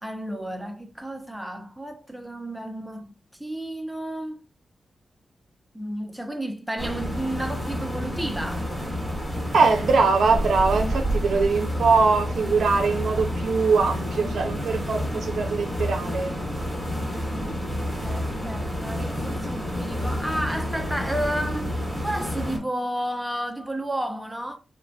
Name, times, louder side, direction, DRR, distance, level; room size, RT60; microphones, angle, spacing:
voice 1, 0.0-3.1 3.4-4.4 5.7-8.7 17.0-24.6, right 1 dB, 5° right, 0.7 m, -32 dB
sound 1, 6.8-22.6, equal, 15° left, 1.4 m, -29 dB
voice 2, 9.5-16.4, right 4 dB, 80° right, 0.4 m, -22 dB
3.8 x 2.4 x 2.3 m
cardioid pair, 55°, 0 cm